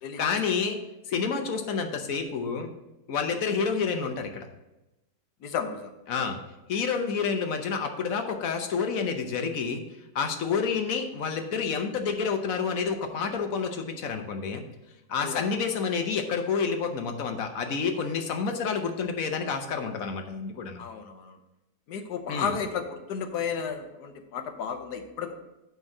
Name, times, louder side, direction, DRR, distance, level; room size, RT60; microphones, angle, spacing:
voice 1, 0.2-0.8 1.1-2.7 3.1-4.5 6.1-6.4 6.7-9.8 10.1-14.6 15.1-20.8 22.3-22.5, left 5 dB, 60° left, 5 dB, 1.2 m, -29 dB
voice 2, 5.4-5.9 6.2-6.3 15.2-15.5 20.8-21.4 21.9-25.3, left 6 dB, 75° left, 6 dB, 1.4 m, -33 dB
9.2 x 3.6 x 6.5 m, 0.96 s
omnidirectional pair, 1.8 m